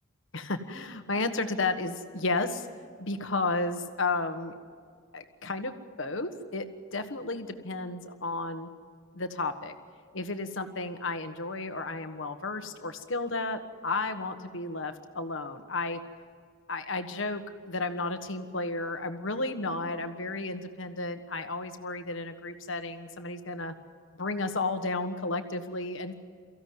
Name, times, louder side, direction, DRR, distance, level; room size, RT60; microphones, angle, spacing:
voice 1, 0.3-2.7 3.0-4.5 5.1-5.7 6.0-6.6 6.9-8.7 9.1-9.7 10.1-16.0 16.7-23.7 24.2-26.1, left 3 dB, 70° left, 8 dB, 1.4 m, -32 dB
24.0 x 15.5 x 9.5 m, 2.1 s
head